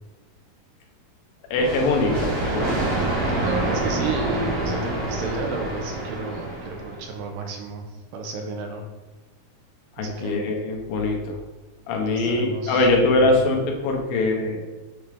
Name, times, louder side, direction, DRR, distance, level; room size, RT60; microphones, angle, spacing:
voice 1, 1.5-2.8 10.0-11.4 11.9-14.6, left 2 dB, 85° left, 1 dB, 2.7 m, -22 dB
sound 1, 1.6-7.1, right 2 dB, 55° right, 1.5 m, -27 dB
voice 2, 3.3-7.9 8.1-8.8 10.0-10.4 12.0-13.3, right 3 dB, 85° right, 3 dB, 2.5 m, -32 dB
7.9 x 3.5 x 3.3 m, 1.2 s
omnidirectional pair, 4.1 m